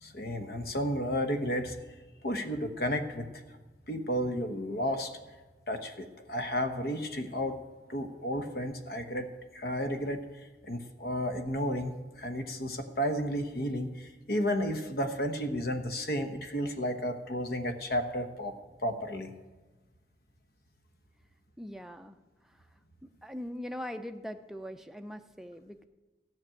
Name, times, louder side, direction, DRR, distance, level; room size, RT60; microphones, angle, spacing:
voice 1, 0.0-1.8 2.2-3.4 3.9-5.1 5.7-7.6 7.9-18.6 18.8-19.3, equal, 55° left, 7 dB, 1.1 m, -32 dB
voice 2, 21.6-22.2 22.4-22.6 23.0-25.9, left 1 dB, ahead, 7 dB, 0.5 m, -41 dB
14.0 x 6.0 x 9.0 m, 1.2 s
head